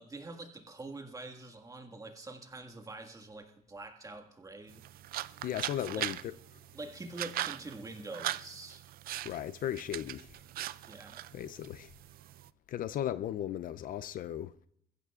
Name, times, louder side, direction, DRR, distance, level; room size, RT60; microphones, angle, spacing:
voice 1, 0.0-4.8 5.9-6.1 6.7-8.9 10.9-11.2, right 2 dB, 20° right, 1.7 m, -45 dB
sound 1, 4.7-12.5, right 13 dB, 60° right, 0.5 m, -41 dB
voice 2, 5.4-6.2 9.2-10.3 11.3-11.9 12.7-14.5, left 11 dB, 55° left, 0.5 m, -36 dB
21.5 x 15.5 x 2.4 m
cardioid pair, 110°, 17 cm